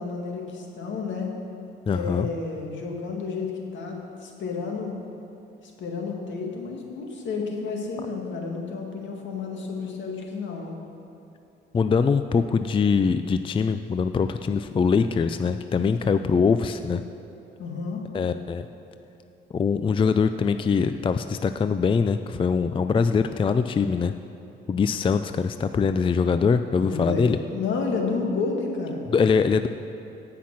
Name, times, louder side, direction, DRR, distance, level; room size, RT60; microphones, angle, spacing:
voice 1, 0.0-1.4 1.9-5.0 5.6-10.8 16.0-16.3 17.6-18.0 26.8-29.0, left 4 dB, 70° left, 1 dB, 2.0 m, -31 dB
voice 2, 1.9-2.3 11.7-17.0 18.1-18.7 19.5-24.1 24.7-27.4 29.1-29.7, left 5 dB, 25° left, 10 dB, 0.4 m, -23 dB
17.0 x 5.9 x 6.0 m, 2.9 s
cardioid pair, 90°, 20 cm